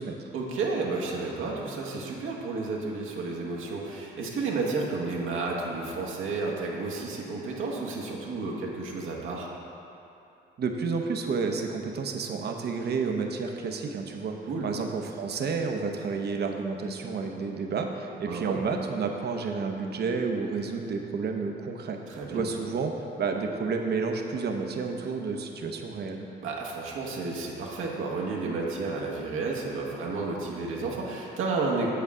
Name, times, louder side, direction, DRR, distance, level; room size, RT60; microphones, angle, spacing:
voice 1, 0.3-9.5 14.5-14.7 18.3-18.6 22.1-22.4 26.4-31.9, right 3 dB, 80° right, -2 dB, 1.3 m, -31 dB
voice 2, 10.6-14.4 14.6-22.0 22.3-26.3, right 4 dB, 55° right, 4 dB, 0.8 m, -30 dB
8.0 x 7.5 x 3.6 m, 2.9 s
cardioid pair, 90°, 20 cm